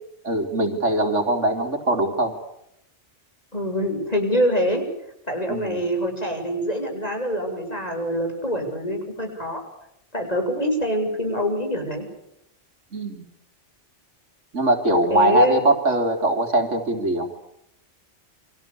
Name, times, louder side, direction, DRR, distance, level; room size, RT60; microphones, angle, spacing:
voice 1, 0.2-2.4 5.5-5.9 12.9-13.2 14.5-17.3, right 1 dB, 85° right, 6 dB, 3.9 m, -21 dB
voice 2, 3.5-4.8 5.3-9.6 10.1-12.1 15.1-15.7, equal, 35° left, 4 dB, 7.3 m, -25 dB
29.0 x 24.5 x 7.0 m, 0.80 s
omnidirectional pair, 1.2 m